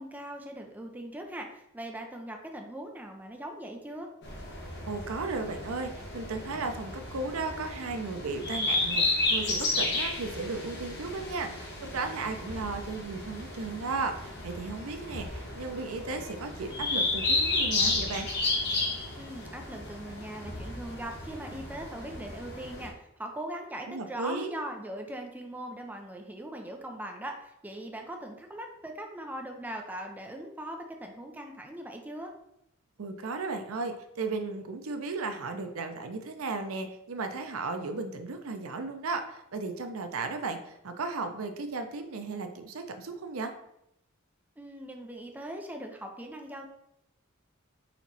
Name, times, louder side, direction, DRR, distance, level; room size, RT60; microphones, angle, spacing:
voice 1, 0.0-4.1 19.2-32.3 44.6-46.7, right 1 dB, 10° right, 3 dB, 0.5 m, -40 dB
sound 1, 4.2-22.9, left 2 dB, 55° left, 1.1 m, -33 dB
voice 2, 4.9-18.3 23.9-24.6 33.0-43.5, right 3 dB, 85° right, 7 dB, 0.6 m, -35 dB
sound 2, 12.5-13.6 15.1-16.1 17.8-18.9 20.5-21.4, left 1 dB, 35° left, 0.6 m, -45 dB
4.3 x 3.0 x 4.0 m, 0.80 s
head